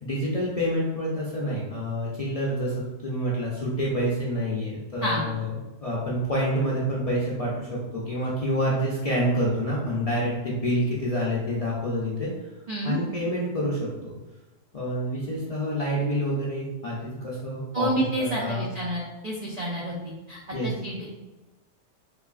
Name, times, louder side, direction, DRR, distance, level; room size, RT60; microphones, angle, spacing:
voice 1, 0.0-5.5 5.8-12.3 12.8-14.1 14.7-18.7 20.5-20.7, equal, 55° left, -6 dB, 0.4 m, -27 dB
voice 2, 5.0-5.3 12.7-13.0 17.7-21.1, right 1 dB, 80° right, -3 dB, 0.3 m, -29 dB
3.4 x 3.1 x 2.3 m, 1.1 s
omnidirectional pair, 1.3 m